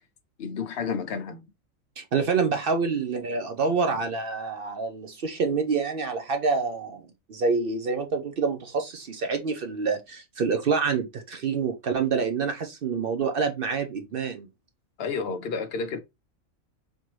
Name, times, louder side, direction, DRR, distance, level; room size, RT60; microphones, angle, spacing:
voice 1, 0.4-1.4 15.0-16.0, left 5 dB, 55° left, 0.9 m, -31 dB
voice 2, 2.0-14.5, right 5 dB, 55° right, 0.7 m, -27 dB
4.4 x 2.8 x 3.1 m
omnidirectional pair, 1.4 m